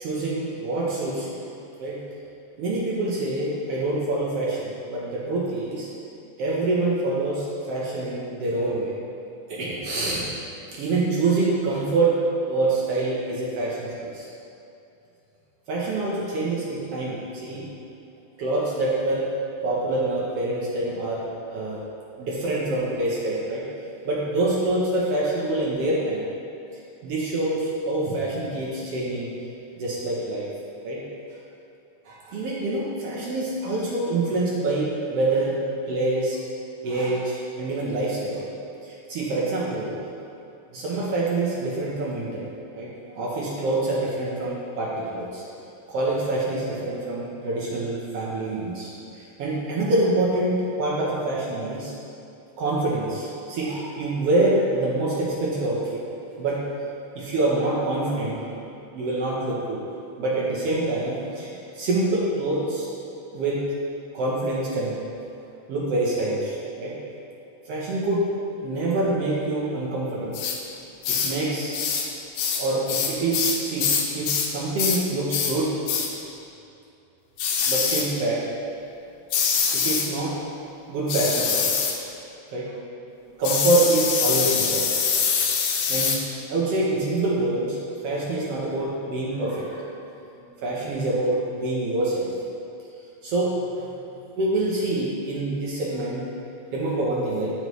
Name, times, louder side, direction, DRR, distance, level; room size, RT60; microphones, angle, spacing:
voice 1, 0.0-1.4 1.8-2.0 2.6-5.9 6.4-8.9 9.5-10.2 10.7-12.2 12.5-14.3 15.7-17.7 18.4-19.3 19.6-21.3 21.5-21.8 22.2-23.6 24.1-26.3 27.0-29.3 29.8-30.5 30.8-31.0 32.1-35.6 35.9-36.4 36.8-38.5 38.8-40.0 40.7-42.5 42.7-45.4 45.9-51.9 52.6-56.0 56.4-56.6 57.2-58.5 58.9-59.8 60.2-62.9 63.3-63.6 64.1-64.9 65.7-67.0 67.7-68.3 68.6-70.4 71.1-71.8 72.5-75.7 77.7-78.4 79.7-80.4 80.9-81.6 82.5-82.9 83.4-84.9 85.9-86.2 86.5-87.8 88.0-89.8 90.3-92.3 93.2-94.0 94.4-96.3 96.7-97.5, right 2 dB, 65° right, -6 dB, 1.7 m, -26 dB
sound 1, 70.3-70.6 71.0-71.4 71.7-72.1 72.4-74.5 74.8-75.0 75.3-75.6 75.9-76.1 77.4-78.1 79.3-80.1 81.1-82.0 83.4-86.2, left 6 dB, 90° left, 2.1 m, -24 dB
9.5 x 5.4 x 3.1 m, 2.7 s
omnidirectional pair, 3.4 m